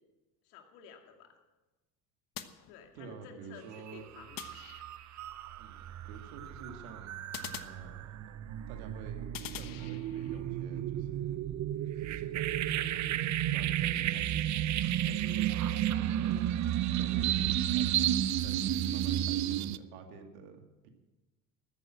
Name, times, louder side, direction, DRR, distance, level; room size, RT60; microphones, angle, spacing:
voice 1, 0.4-1.3 2.7-3.6 3.9-4.4 15.7-16.1, left 6 dB, 75° left, 4 dB, 2.4 m, -52 dB
sound 1, 2.3-3.3 4.4-5.2 7.3-8.4 9.3-10.4, left 11 dB, 45° left, 1.2 m, -45 dB
voice 2, 2.9-4.2 5.6-7.2 7.6-8.2 8.7-9.3 9.5-15.6 16.1-16.5 16.9-18.1 18.4-18.7 18.9-20.9, right 5 dB, 75° right, 5 dB, 2.2 m, -50 dB
sound 2, 3.7-3.9 4.3-19.8, right 12 dB, 40° right, 0.6 m, -32 dB
14.0 x 9.5 x 7.6 m, 1.1 s
hypercardioid pair, 75°, 45 cm